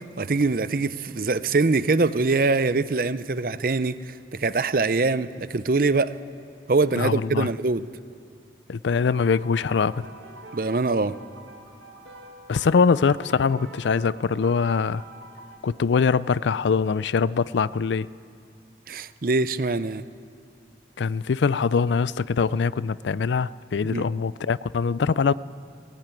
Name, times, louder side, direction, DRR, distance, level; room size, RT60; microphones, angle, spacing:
voice 1, 0.0-6.1 6.7-7.9 10.5-11.1 18.9-20.0 23.9-24.1, right 3 dB, 50° right, 14 dB, 0.6 m, -23 dB
voice 2, 7.0-7.5 8.7-10.1 12.5-15.0 15.6-18.1 21.0-25.3, left 5 dB, 85° left, 19 dB, 0.4 m, -23 dB
sound 1, 8.9-15.6, right 1 dB, 85° right, 2.0 m, -45 dB
19.5 x 16.5 x 9.1 m, 2.3 s
head